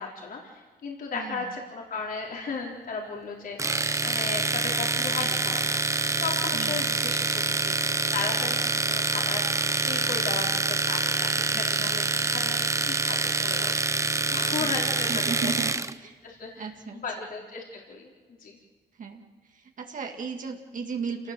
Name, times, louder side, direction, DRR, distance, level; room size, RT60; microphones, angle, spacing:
voice 1, 0.0-3.7 4.0-5.8 6.2-7.8 8.1-12.6 12.8-14.0 14.3-15.5 16.2-18.6, left 4 dB, 55° left, -1 dB, 4.2 m, -36 dB
voice 2, 1.1-1.5 6.5-6.8 11.5-11.9 14.6-14.8 15.1-16.2 16.6-17.0 19.0-21.3, right 5 dB, 50° right, 3 dB, 2.1 m, -36 dB
Domestic sounds home sounds, 3.6-15.9, right 3 dB, 15° right, 0.7 m, -26 dB
28.0 x 18.5 x 7.6 m, 1.5 s
cardioid pair, 130°, 18 cm